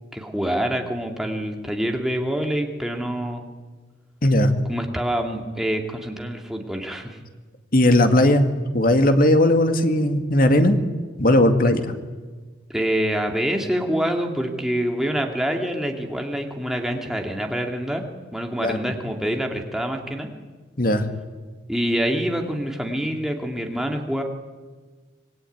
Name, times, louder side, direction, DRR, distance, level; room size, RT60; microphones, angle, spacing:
voice 1, 0.1-3.5 4.7-7.2 12.7-18.0 18.3-20.3 21.7-24.2, equal, ahead, 2 dB, 2.6 m, -26 dB
voice 2, 7.7-10.8 11.2-11.8 18.6-18.8 20.8-21.0, left 1 dB, 45° left, 7 dB, 2.2 m, -17 dB
26.5 x 21.0 x 9.5 m, 1.4 s
head